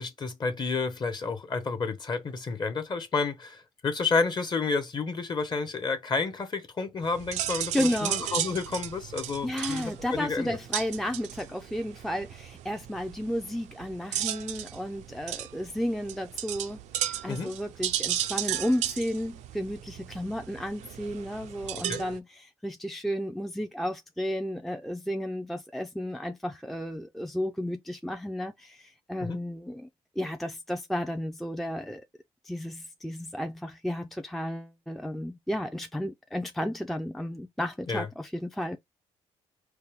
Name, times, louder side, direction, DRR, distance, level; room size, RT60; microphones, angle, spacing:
voice 1, 0.0-10.6 17.3-17.5 21.8-22.0 29.2-29.4 37.9-38.1, left 4 dB, 40° left, 1.0 m, -30 dB
sound 1, 7.0-22.2, right 12 dB, 80° right, 0.4 m, -35 dB
voice 2, 7.7-8.2 9.4-16.8 17.1-29.9 30.2-32.0 32.5-38.8, equal, ahead, 0.4 m, -33 dB
4.3 x 2.3 x 3.5 m
cardioid pair, 80°, 12 cm